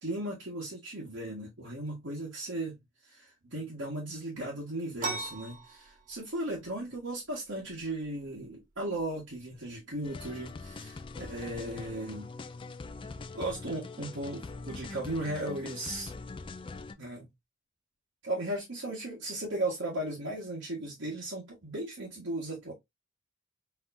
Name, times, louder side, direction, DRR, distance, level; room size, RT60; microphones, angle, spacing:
voice 1, 0.0-2.8 3.0-12.3 13.3-16.1 17.0-17.3 18.2-22.7, right 1 dB, 65° right, 1.6 m, -36 dB
sound 1, 5.0-14.4, right 3 dB, 40° right, 1.0 m, -45 dB
sound 2, 10.0-16.9, left 3 dB, 25° left, 0.3 m, -43 dB
4.4 x 3.4 x 2.6 m
head